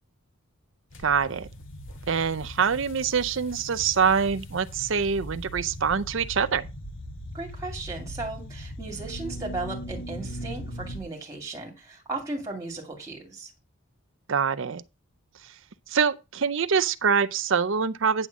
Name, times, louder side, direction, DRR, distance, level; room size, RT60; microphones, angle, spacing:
sound 1, 0.9-11.0, equal, 60° left, 1.6 m, -39 dB
voice 1, 1.0-1.5 2.1-6.7 14.3-14.8 15.9-18.3, right 6 dB, 60° right, 0.5 m, -25 dB
voice 2, 7.3-13.5, right 3 dB, 15° right, 2.3 m, -36 dB
9.8 x 3.7 x 7.2 m
head